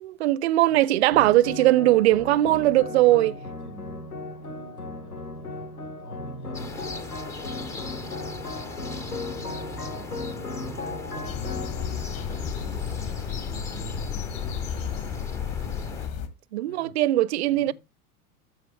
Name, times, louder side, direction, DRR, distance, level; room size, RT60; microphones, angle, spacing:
voice 1, 0.0-3.3 16.5-17.7, right 15 dB, 50° right, 0.5 m, -20 dB
sound 1, 1.1-13.6, left 3 dB, 85° left, 1.2 m, -37 dB
voice 2, 3.0-6.8 8.8-11.7 12.1-14.6 16.7-16.9 17.5-17.7, right 2 dB, 70° left, 4.9 m, -45 dB
sound 2, 6.5-16.1, left 3 dB, 10° left, 0.4 m, -38 dB
sound 3, 11.2-16.3, left 8 dB, 40° left, 1.3 m, -33 dB
13.5 x 4.7 x 3.2 m
figure-of-eight pair, 90°, 44 cm